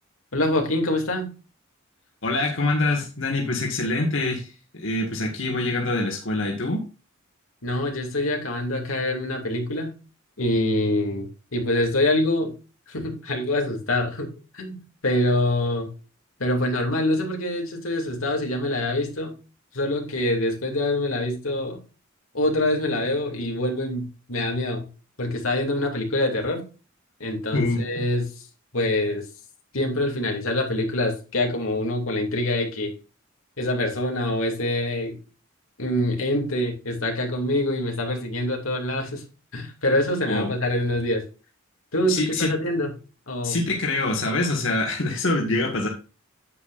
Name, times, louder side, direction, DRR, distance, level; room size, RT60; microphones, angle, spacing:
voice 1, 0.3-1.3 7.6-9.9 10.4-12.5 12.9-15.9 16.4-19.3 19.7-21.8 22.3-24.9 25.2-26.6 27.2-28.4 28.7-29.2 29.7-32.9 33.6-35.2 35.8-39.2 39.5-41.2 41.9-42.9 43.3-43.6, left 1 dB, 90° left, 2 dB, 2.6 m, -25 dB
voice 2, 2.2-4.5 4.7-6.8 27.5-27.8 40.3-40.5 42.1-42.5 43.4-45.9, left 2 dB, 65° left, 0 dB, 1.9 m, -25 dB
9.5 x 8.6 x 2.6 m, 0.33 s
head